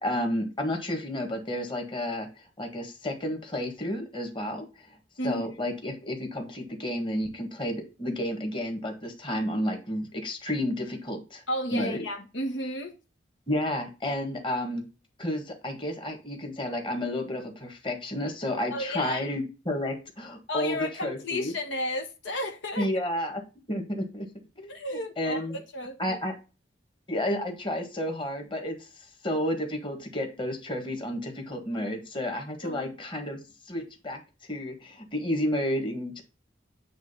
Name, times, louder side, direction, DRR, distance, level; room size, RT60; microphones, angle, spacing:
voice 1, 0.0-2.3 2.6-4.9 5.2-11.4 11.7-12.0 13.5-14.8 15.2-21.5 22.8-23.4 23.7-24.3 24.6-25.6 26.0-26.3 27.1-33.4 33.7-34.2 34.5-36.2, left 1 dB, 25° left, 1.6 m, -31 dB
voice 2, 5.2-5.5 11.5-12.9 18.7-19.3 20.5-23.1 24.7-25.4 25.7-26.2 32.6-32.9, left 1 dB, 80° left, 1.2 m, -33 dB
8.9 x 3.2 x 5.5 m
head